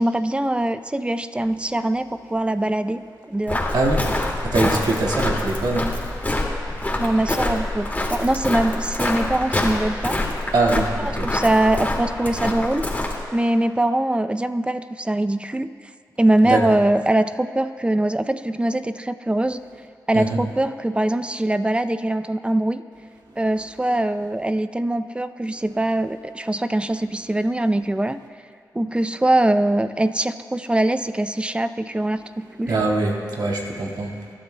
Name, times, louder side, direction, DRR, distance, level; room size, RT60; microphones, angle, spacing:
voice 1, 0.0-3.0 3.3-3.6 7.0-10.2 11.0-12.8 13.3-15.7 16.2-19.6 20.1-22.8 23.4-28.2 28.7-32.7, right 1 dB, 15° right, 10 dB, 0.5 m, -22 dB
Walk footsteps, 3.5-13.2, left 2 dB, 25° left, 2.1 m, -25 dB
voice 2, 3.7-6.2 10.5-11.4 16.4-16.8 20.1-20.4 32.7-34.2, right 2 dB, 75° right, -1 dB, 1.8 m, -23 dB
24.0 x 12.0 x 2.2 m, 2.1 s
cardioid pair, 65°, 7 cm